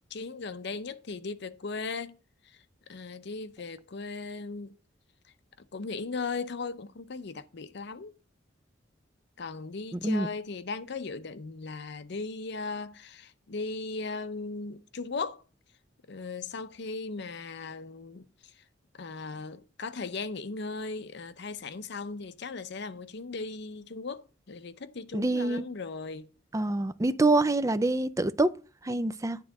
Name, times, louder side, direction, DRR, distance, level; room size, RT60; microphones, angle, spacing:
voice 1, 0.1-2.1 2.9-4.7 5.7-8.1 9.4-15.4 16.1-18.3 18.9-26.3, left 4 dB, 65° left, 0.7 m, -37 dB
voice 2, 9.9-10.3 25.1-25.6 26.5-28.5 28.8-29.4, right 2 dB, 15° right, 0.4 m, -26 dB
9.4 x 3.7 x 7.1 m
head